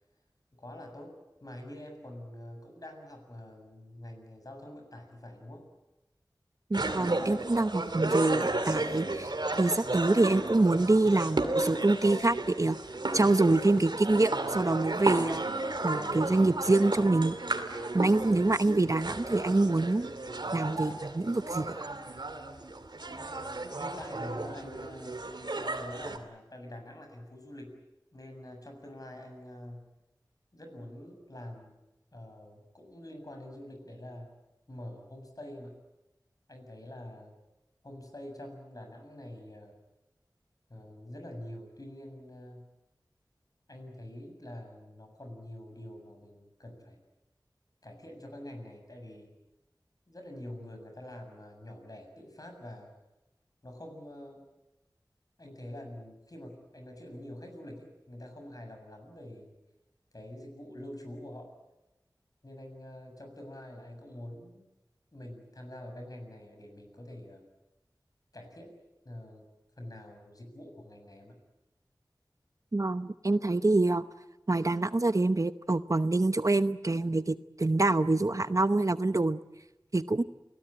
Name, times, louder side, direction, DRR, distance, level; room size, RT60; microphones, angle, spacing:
voice 1, 0.6-5.7 23.8-25.3 25.6-27.8 28.1-29.9 30.5-31.8 32.1-34.3 34.7-35.8 36.5-37.4 37.8-39.8 40.7-42.7 43.7-47.0 47.8-49.3 50.1-52.9 53.6-54.4 55.4-59.5 60.1-61.5 62.4-64.7 65.1-67.4 68.3-68.8 69.0-69.5 69.8-71.4, left 1 dB, 55° left, 4 dB, 7.1 m, -46 dB
voice 2, 6.7-12.8 13.1-15.5 15.8-17.4 17.9-20.1 20.5-21.8 72.7-74.0 74.5-79.4 79.9-80.2, right 2 dB, 45° right, 12 dB, 0.9 m, -26 dB
sound 1, 6.7-26.2, right 2 dB, 75° right, 2.5 m, -33 dB
29.0 x 18.5 x 8.9 m, 0.99 s
wide cardioid pair, 40°, 8 cm